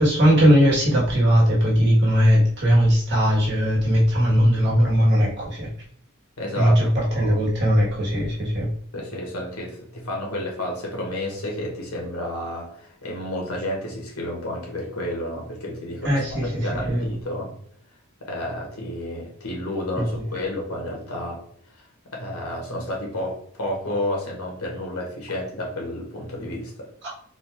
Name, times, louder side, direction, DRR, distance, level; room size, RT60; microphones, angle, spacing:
voice 1, 0.0-5.7 6.5-8.7 16.0-17.0 20.0-20.1, equal, 55° right, -4 dB, 1.6 m, -19 dB
voice 2, 6.4-6.8 7.1-7.4 8.9-17.5 18.2-21.4 22.1-26.9, left 1 dB, 85° left, -1 dB, 1.5 m, -31 dB
4.0 x 2.7 x 3.5 m, 0.62 s
head